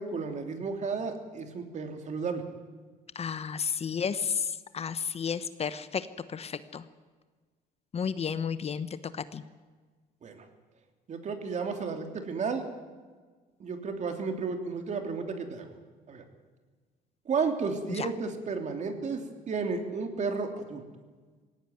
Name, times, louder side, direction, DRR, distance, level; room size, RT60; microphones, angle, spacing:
voice 1, 0.0-2.4 10.2-10.4 11.1-12.7 13.6-15.7 16.1-16.2 17.2-20.8, right 4 dB, 45° right, 5 dB, 3.2 m, -33 dB
voice 2, 3.1-6.8 7.9-9.4 17.9-18.1, left 6 dB, 40° left, 13 dB, 1.0 m, -32 dB
19.0 x 17.5 x 9.3 m, 1.4 s
cardioid pair, 110°, 17 cm